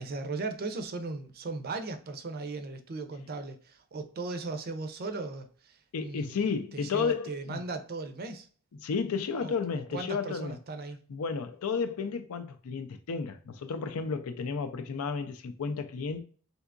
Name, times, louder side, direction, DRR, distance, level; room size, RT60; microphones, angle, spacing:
voice 1, 0.0-6.4 6.7-8.5 9.4-11.0, right 3 dB, 45° right, 0.5 m, -37 dB
voice 2, 5.9-7.6 8.8-10.6 11.1-16.2, left 5 dB, 75° left, 0.4 m, -32 dB
3.4 x 2.8 x 2.4 m
head